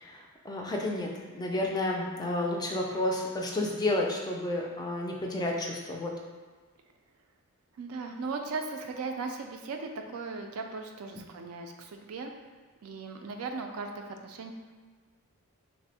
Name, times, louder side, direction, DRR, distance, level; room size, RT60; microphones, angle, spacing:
voice 1, 0.0-6.1 11.1-11.2, left 1 dB, 20° left, 0 dB, 0.3 m, -31 dB
voice 2, 7.8-12.3 12.8-14.5, right 4 dB, 70° right, 4 dB, 0.4 m, -37 dB
3.4 x 2.0 x 4.1 m, 1.5 s
head